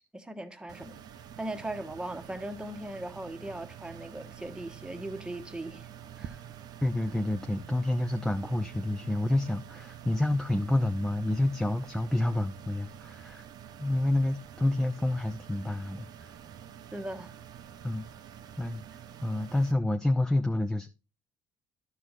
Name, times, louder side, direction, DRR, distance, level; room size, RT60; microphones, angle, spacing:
voice 1, 0.1-1.0 1.4-5.9 6.2-6.4 16.9-17.4, right 1 dB, 10° right, 1.2 m, -39 dB
sound 1, 0.7-19.7, right 9 dB, 60° right, 0.7 m, -47 dB
voice 2, 6.8-13.4 13.8-16.3 17.8-18.0 18.6-18.8 19.2-20.9, left 1 dB, 5° left, 0.6 m, -28 dB
12.5 x 4.7 x 4.0 m
supercardioid pair, 85°, 8 cm